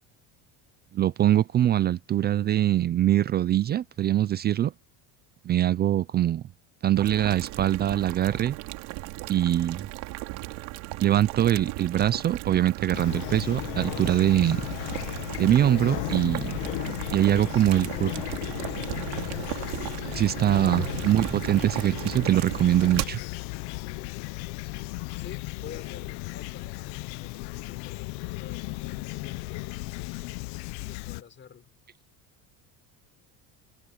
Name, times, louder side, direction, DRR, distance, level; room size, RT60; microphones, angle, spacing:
voice 1, 0.9-4.7 5.5-6.4 6.8-8.6 9.3-9.9 11.0-14.6 15.4-16.6 17.1-18.1 20.1-23.2, right 12 dB, 25° right, 0.4 m, -23 dB
Boiling, 7.0-23.0, right 21 dB, 75° right, 2.7 m, -36 dB
Fowl / Chirp tweet, 12.9-31.2, left 23 dB, 80° left, 1.0 m, -35 dB
voice 2, 25.1-30.1 30.8-31.7, left 7 dB, 30° left, 6.0 m, -48 dB
cardioid pair, 150°, 40 cm